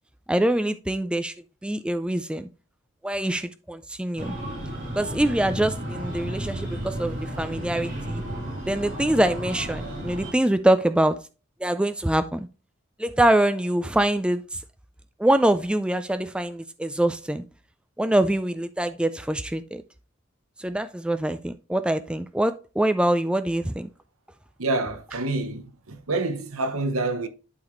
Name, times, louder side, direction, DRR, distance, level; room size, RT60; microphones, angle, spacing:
voice 1, 0.3-1.3 1.6-2.5 3.0-4.4 5.0-8.2 8.7-11.2 11.6-12.5 13.0-14.6 15.2-17.4 18.0-19.8 20.6-23.9, right 1 dB, 5° right, 0.3 m, -24 dB
Breathing, 4.2-10.3, right 1 dB, 40° right, 4.5 m, -33 dB
voice 2, 24.6-27.3, right 2 dB, 85° right, 0.9 m, -27 dB
11.5 x 4.0 x 3.1 m
head